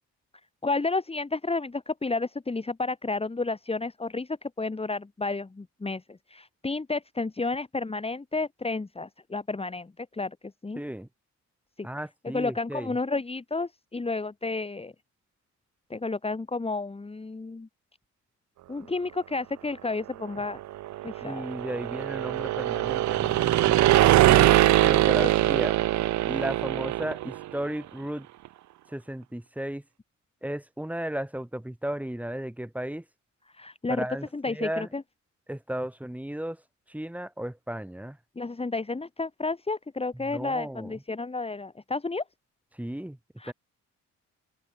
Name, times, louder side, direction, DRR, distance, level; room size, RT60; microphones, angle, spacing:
voice 1, 0.6-10.4 10.6-10.8 11.8-11.9 12.2-14.9 15.9-17.7 18.7-20.6 21.0-21.5 24.3-24.6 25.2-25.3 33.5-34.1 34.3-35.0 38.4-42.2 43.4-43.5, left 3 dB, 20° left, 2.7 m, -31 dB
voice 2, 10.8-11.1 11.8-13.0 21.2-23.8 24.8-25.8 26.2-28.3 28.9-29.8 30.4-33.0 33.9-34.9 35.5-36.6 36.9-38.2 40.1-41.0 42.7-43.2 43.5-43.6, right 1 dB, 5° right, 5.1 m, -34 dB
sound 1, 20.5-27.5, right 15 dB, 70° right, 0.7 m, -22 dB
open air
cardioid pair, 90°, 30 cm